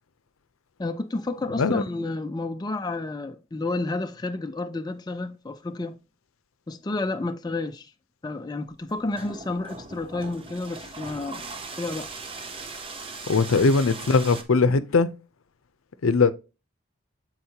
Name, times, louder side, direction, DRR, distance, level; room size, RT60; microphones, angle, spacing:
voice 1, 0.8-6.0 6.7-7.9 8.2-11.5 11.8-12.1, left 2 dB, 20° left, 0.3 m, -30 dB
sound 1, 8.7-14.4, right 3 dB, 25° right, 0.6 m, -39 dB
voice 2, 13.3-15.1 16.0-16.3, left 4 dB, 85° left, 0.6 m, -20 dB
7.9 x 4.5 x 2.8 m
head